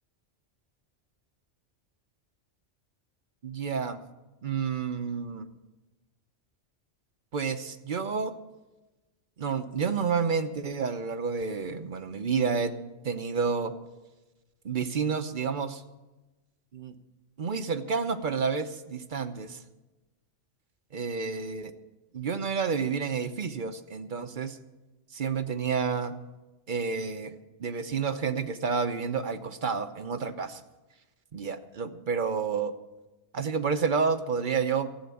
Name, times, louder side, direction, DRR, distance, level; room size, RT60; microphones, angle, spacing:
voice 1, 3.4-4.0 4.4-5.5 7.3-8.3 9.4-12.7 13.0-13.7 14.6-15.8 16.7-17.0 17.4-19.6 20.9-21.7 22.1-24.6 25.1-26.1 26.7-27.3 27.6-30.6 31.3-32.7 33.3-34.9, right 5 dB, 45° right, 10 dB, 1.0 m, -30 dB
14.5 x 8.2 x 9.6 m, 1.1 s
omnidirectional pair, 1.2 m